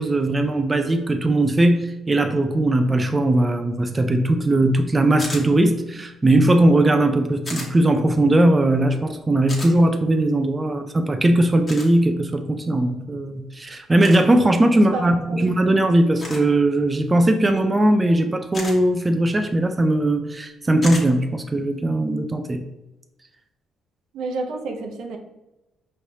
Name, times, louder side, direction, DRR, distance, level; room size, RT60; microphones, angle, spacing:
voice 1, 0.0-22.6, right 1 dB, 20° right, 5 dB, 0.4 m, -19 dB
sound 1, 5.2-5.5 7.5-7.7 9.5-9.7 11.7-11.9 14.0-14.2 16.2-16.5 18.5-18.8 20.8-21.1, left 2 dB, 35° left, 1.3 m, -32 dB
voice 2, 14.7-15.4 24.1-25.2, right 2 dB, 80° right, 3 dB, 0.6 m, -30 dB
5.2 x 3.2 x 2.8 m, 0.98 s
cardioid pair, 90°, 0 cm